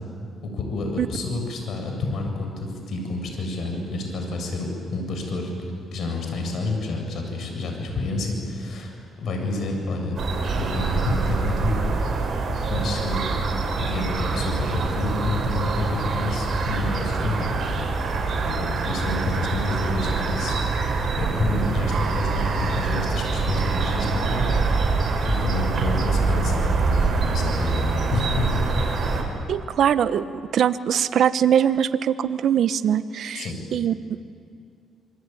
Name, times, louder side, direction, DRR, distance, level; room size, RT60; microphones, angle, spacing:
voice 1, 0.5-10.2 10.5-11.9 12.7-13.2 13.8-17.6 18.4-24.4 24.7-24.9 25.3-28.5 33.3-33.6, left 2 dB, 65° left, 3 dB, 7.2 m, -29 dB
sound 1, 10.2-29.2, right 4 dB, 50° right, 6.0 m, -24 dB
voice 2, 29.5-33.5 33.7-33.9, right 9 dB, 65° right, 13 dB, 1.0 m, -22 dB
26.5 x 24.0 x 9.3 m, 2.4 s
cardioid pair, 90°, 0 cm